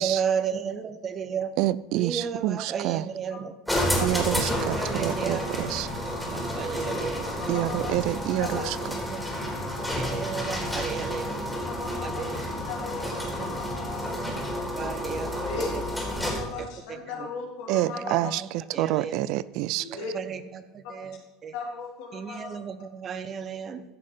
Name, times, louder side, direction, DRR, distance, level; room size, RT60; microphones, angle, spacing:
voice 1, 0.0-1.5 1.9-3.5 4.1-5.5 6.0-7.3 8.5-9.2 10.0-11.5 12.0-12.3 13.0-13.6 14.6-15.8 16.9-17.3 17.9-19.1 20.0-21.5 22.1-23.8, right 7 dB, 40° right, 11 dB, 1.1 m, -34 dB
voice 2, 1.6-3.1 4.0-5.9 7.5-8.8 17.7-19.9, right 15 dB, 60° right, 19 dB, 0.4 m, -27 dB
sound 1, 3.7-16.6, equal, ahead, 3.8 m, -30 dB
voice 3, 7.5-8.7 11.7-12.2 12.7-15.0 15.4-15.8 16.2-18.2 19.8-20.1 21.5-22.6, left 5 dB, 70° left, -1 dB, 4.0 m, -38 dB
14.5 x 6.5 x 5.5 m, 1.1 s
hypercardioid pair, 85°, 0 cm